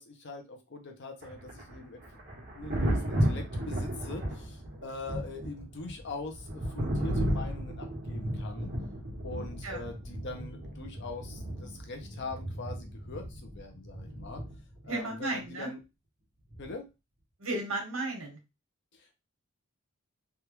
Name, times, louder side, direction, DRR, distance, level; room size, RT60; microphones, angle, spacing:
voice 1, 0.0-2.0 2.3-8.7 9.2-14.4 14.8-15.8 16.6-16.8 18.9-19.1, left 3 dB, 55° left, 4 dB, 0.7 m, -42 dB
Thunder, 1.2-14.9 16.5-16.7, equal, 45° right, 1.4 m, -34 dB
voice 2, 14.9-15.7 17.4-18.4, right 2 dB, 75° right, 1 dB, 1.4 m, -34 dB
3.4 x 2.4 x 2.9 m, 0.25 s
head